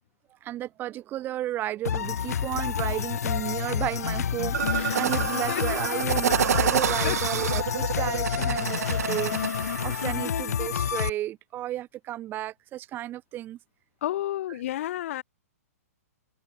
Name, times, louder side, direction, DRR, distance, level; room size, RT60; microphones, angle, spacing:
voice 1, 0.4-9.3 9.8-13.6, right 13 dB, 25° right, 1.4 m, -33 dB
sound 1, 1.8-11.1, left 8 dB, 75° left, 1.2 m, -29 dB
sound 2, 4.5-10.1, right 9 dB, 75° right, 0.5 m, -28 dB
voice 2, 4.7-5.1 5.5-5.8 7.0-7.2 14.0-15.2, left 13 dB, 55° left, 0.4 m, -31 dB
hypercardioid pair, 140°, 8 cm